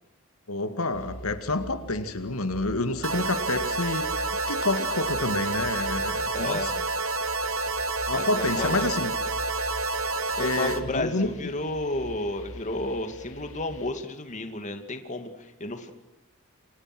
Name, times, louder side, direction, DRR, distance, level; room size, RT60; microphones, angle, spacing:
voice 1, 0.5-6.7 8.1-9.1 10.4-11.3, left 2 dB, 85° left, 9 dB, 2.3 m, -29 dB
sound 1, 0.9-13.9, equal, 65° left, 2.8 m, -43 dB
sound 2, 3.0-10.8, right 3 dB, 70° right, 2.1 m, -29 dB
voice 2, 6.3-6.7 8.1-8.9 10.3-15.9, left 2 dB, 35° left, 7 dB, 2.6 m, -32 dB
29.5 x 25.5 x 6.3 m, 0.87 s
head